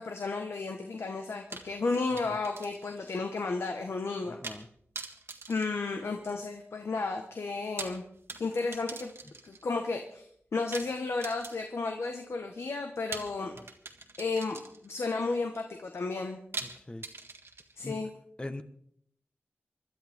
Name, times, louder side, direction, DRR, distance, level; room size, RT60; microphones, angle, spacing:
voice 1, 0.0-4.6 5.5-8.0 8.4-9.1 9.4-10.3 10.5-13.5 14.2-16.4 17.8-18.1, left 3 dB, 75° left, 4 dB, 1.4 m, -33 dB
sound 1, 1.5-3.0 3.3-3.4 4.4-4.7 5.0-6.5 7.5-9.7 10.7-11.9 13.1-15.0 16.5-17.9, right 3 dB, 70° right, 1.7 m, -43 dB
voice 2, 4.3-4.7 16.6-17.0 17.8-18.0 18.4-18.6, left 1 dB, 25° left, 8 dB, 1.3 m, -41 dB
25.5 x 12.0 x 3.7 m, 0.68 s
wide cardioid pair, 75°, 4 cm